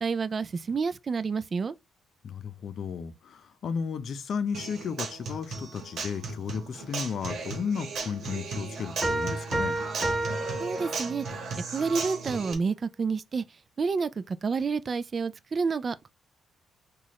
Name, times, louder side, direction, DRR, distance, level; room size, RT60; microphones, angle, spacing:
voice 1, 0.0-1.7 10.6-11.3 11.7-13.4 13.8-16.1, right 5 dB, 40° right, 0.3 m, -29 dB
voice 2, 2.2-9.8, left 6 dB, 60° left, 0.6 m, -34 dB
Human voice / Acoustic guitar, 4.5-12.5, right 4 dB, 65° right, 1.1 m, -36 dB
sound 1, 9.0-11.5, right 2 dB, 15° right, 1.3 m, -31 dB
3.9 x 2.4 x 3.0 m
cardioid pair, 90°, 0 cm